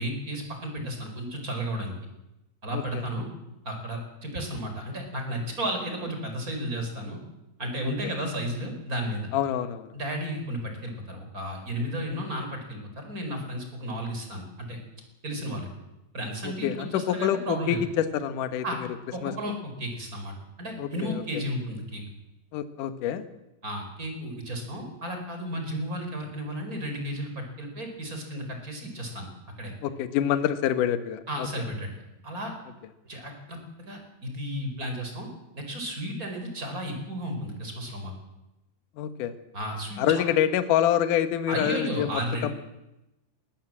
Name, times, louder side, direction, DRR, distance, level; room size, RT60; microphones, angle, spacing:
voice 1, 0.0-1.9 2.6-3.3 3.6-7.2 7.6-9.3 9.9-14.8 15.2-15.7 16.1-17.8 18.6-18.8 19.1-22.0 23.6-29.3 29.6-29.7 31.3-31.9 32.2-32.5 33.0-33.6 33.9-35.3 35.5-38.1 39.5-40.3 41.5-42.4, equal, 20° right, 4 dB, 4.5 m, -33 dB
voice 2, 2.7-3.0 7.8-8.1 9.3-9.9 16.6-18.6 19.2-19.3 20.8-21.2 22.5-23.2 29.8-31.5 39.0-39.3 40.0-42.6, left 10 dB, 70° left, 10 dB, 1.9 m, -26 dB
21.0 x 18.5 x 7.6 m, 0.94 s
omnidirectional pair, 5.7 m